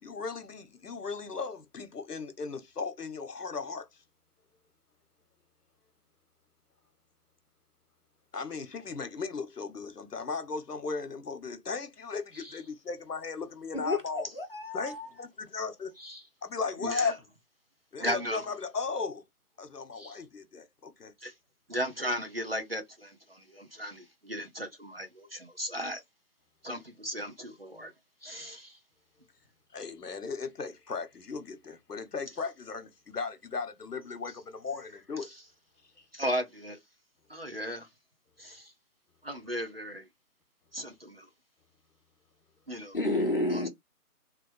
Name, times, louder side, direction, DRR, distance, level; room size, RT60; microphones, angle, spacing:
voice 1, 0.0-3.9 8.3-14.3 14.7-15.9 16.4-17.2 17.9-19.2 19.6-21.1 29.7-35.3 36.0-36.1, left 4 dB, 80° left, 0.9 m, -36 dB
voice 2, 13.7-15.1 42.9-43.7, left 2 dB, 35° left, 0.9 m, -30 dB
voice 3, 18.0-18.5 20.0-20.2 21.2-21.3 21.7-26.0 26.6-27.9 28.2-28.8 36.1-36.8 37.3-37.9 38.4-38.7 39.2-40.1 40.7-41.3 42.7-43.0 43.5-43.7, equal, 40° right, 0.6 m, -36 dB
3.0 x 2.4 x 3.2 m
figure-of-eight pair, 155°, 46 cm